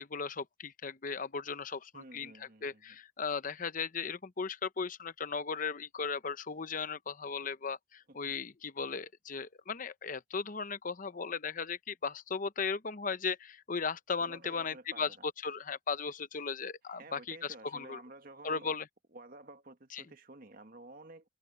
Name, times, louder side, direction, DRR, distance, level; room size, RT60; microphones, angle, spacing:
voice 1, 0.0-17.4 17.7-18.0 18.4-18.9 19.9-20.0, left 5 dB, 45° left, 0.8 m, -37 dB
voice 2, 1.9-3.0 8.1-8.3 14.2-15.3 16.9-18.8 19.1-21.3, right 2 dB, 50° right, 1.9 m, -52 dB
head